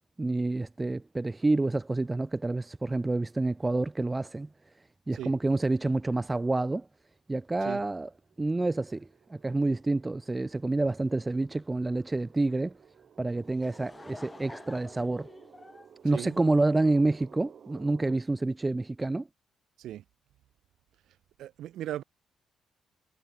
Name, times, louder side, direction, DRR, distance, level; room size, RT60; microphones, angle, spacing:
voice 1, 0.2-4.5 5.1-6.9 7.3-8.1 8.4-12.8 13.2-15.3 16.0-19.3, right 2 dB, 20° right, 1.1 m, -28 dB
sound 1, 8.1-18.2, right 8 dB, 55° right, 3.2 m, -55 dB
Laughter / Crowd, 13.3-17.1, left 2 dB, 20° left, 5.6 m, -49 dB
voice 2, 21.4-22.0, right 12 dB, 80° right, 2.0 m, -37 dB
cardioid pair, 90°, 0 cm